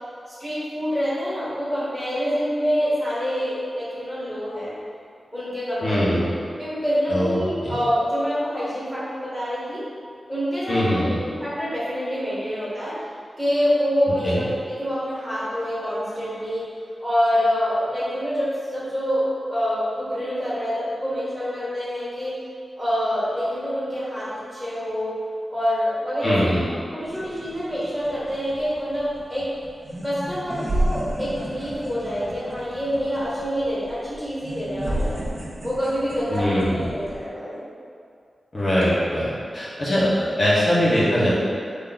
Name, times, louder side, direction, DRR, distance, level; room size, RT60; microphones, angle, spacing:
voice 1, 0.4-4.7 5.3-6.1 6.6-9.8 10.3-12.9 13.4-16.6 17.0-22.3 22.8-25.1 25.5-26.4 26.9-29.5 30.0-35.2 35.6-36.6 36.9-37.6, equal, 10° left, -11 dB, 1.4 m, -26 dB
voice 2, 5.8-6.3 7.1-7.8 10.7-11.2 14.2-14.4 26.2-26.6 36.3-36.9 38.5-41.3, equal, 40° left, -9 dB, 1.2 m, -22 dB
sound 1, 27.0-37.2, right 1 dB, 45° right, 0.8 m, -32 dB
4.5 x 3.0 x 4.0 m, 2.3 s
wide cardioid pair, 115°, 0 cm